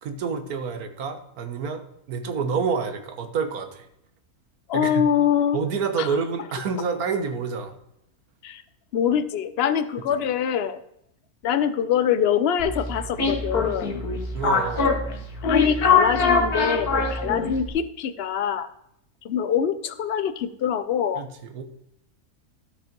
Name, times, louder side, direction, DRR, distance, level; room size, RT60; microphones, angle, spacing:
voice 1, 0.0-3.9 4.7-5.1 5.5-7.8 10.1-10.2 14.3-15.1 21.2-21.6, right 5 dB, 80° right, 8 dB, 1.5 m, -28 dB
voice 2, 4.7-5.6 6.0-6.1 8.4-8.6 8.9-10.8 11.4-14.0 15.1-18.7 19.2-21.3, left 8 dB, 55° left, 12 dB, 0.7 m, -24 dB
sound 1, 12.6-17.7, left 4 dB, 80° left, 1.9 m, -23 dB
12.5 x 5.3 x 5.3 m, 0.76 s
omnidirectional pair, 1.6 m